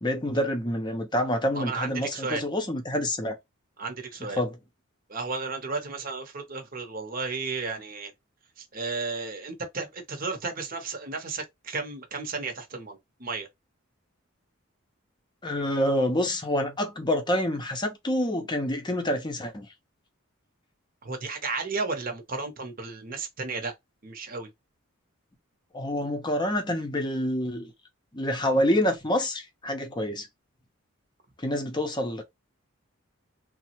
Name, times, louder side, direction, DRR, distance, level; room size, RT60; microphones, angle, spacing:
voice 1, 0.0-3.4 4.3-4.6 15.4-19.7 25.7-27.7 28.1-30.3 31.4-32.2, left 1 dB, 20° left, 0.6 m, -27 dB
voice 2, 1.5-2.4 3.8-4.4 5.1-8.1 8.6-13.5 21.0-23.7 24.0-24.5, right 4 dB, 40° right, 0.8 m, -33 dB
3.2 x 2.1 x 2.9 m
head